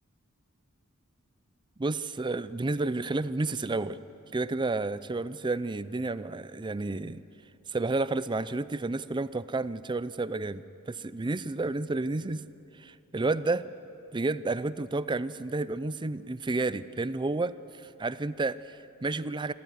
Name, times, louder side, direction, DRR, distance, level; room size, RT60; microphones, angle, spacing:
voice 1, 1.8-4.0 4.3-7.2 7.7-12.4 12.8-13.7 14.1-19.5, right 3 dB, 20° right, 15 dB, 0.5 m, -31 dB
27.5 x 14.0 x 9.8 m, 2.7 s
head